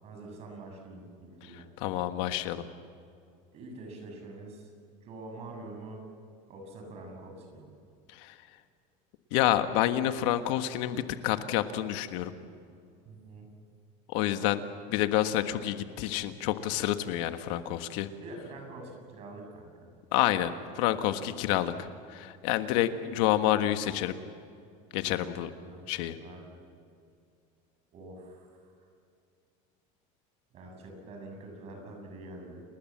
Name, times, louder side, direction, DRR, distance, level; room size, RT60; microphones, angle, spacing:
voice 1, 0.0-1.7 3.5-4.7 5.0-6.0 6.5-7.7 13.1-13.5 18.2-19.9 25.4-25.9 26.2-26.4 27.9-28.9 30.5-32.6, right 2 dB, 40° right, 3 dB, 7.3 m, -45 dB
voice 2, 1.8-2.7 8.1-8.4 9.3-12.3 14.1-14.6 14.9-18.1 20.1-24.1 24.9-25.5 25.9-26.1, left 13 dB, 80° left, 9 dB, 1.5 m, -28 dB
29.5 x 20.5 x 7.4 m, 2.4 s
cardioid pair, 160°, 16 cm